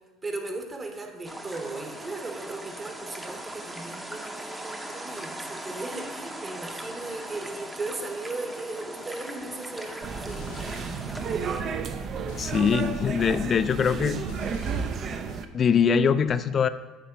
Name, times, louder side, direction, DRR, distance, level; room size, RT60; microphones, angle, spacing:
voice 1, 0.2-11.6, right 2 dB, 30° right, 4 dB, 1.0 m, -37 dB
sound 1, 1.2-11.6, right 1 dB, 10° right, 0.7 m, -39 dB
sound 2, 9.4-15.4, left 4 dB, 85° left, 1.0 m, -47 dB
sound 3, 10.0-15.5, right 6 dB, 45° right, 0.5 m, -32 dB
voice 2, 12.4-14.2 15.5-16.7, left 6 dB, 40° left, 13 dB, 0.3 m, -23 dB
8.3 x 3.0 x 5.9 m, 1.3 s
supercardioid pair, 95°, 0 cm